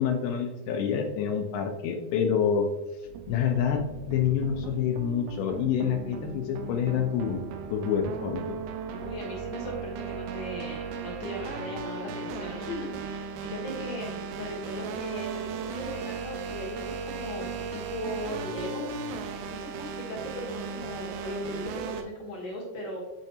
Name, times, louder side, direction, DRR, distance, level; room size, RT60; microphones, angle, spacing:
voice 1, 0.0-2.7 3.3-7.4 7.7-8.6, left 7 dB, 80° left, 4 dB, 2.5 m, -27 dB
sound 1, 3.1-22.0, right 5 dB, 85° right, 2.6 m, -37 dB
voice 2, 8.9-23.0, equal, 65° left, -3 dB, 1.7 m, -38 dB
9.2 x 4.4 x 2.8 m, 1.1 s
omnidirectional pair, 4.8 m